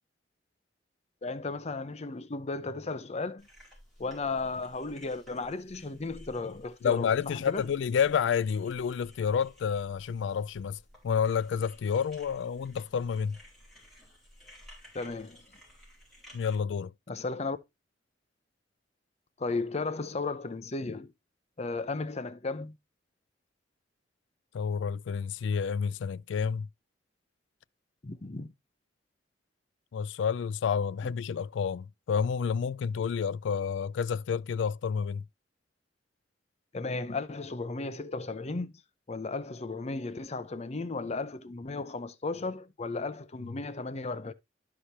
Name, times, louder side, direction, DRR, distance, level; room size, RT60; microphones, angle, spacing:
voice 1, 1.2-3.5 4.0-7.7 14.9-15.4 17.1-17.6 19.4-21.1 21.6-22.8 28.0-28.5 36.7-38.7 39.1-44.3, left 3 dB, 35° left, 0.6 m, -35 dB
sound 1, 3.4-16.5, equal, ahead, 4.5 m, -55 dB
voice 2, 6.8-13.4 16.3-16.9 24.5-26.7 29.9-35.2, left 6 dB, 85° left, 0.3 m, -29 dB
12.5 x 4.9 x 2.8 m
head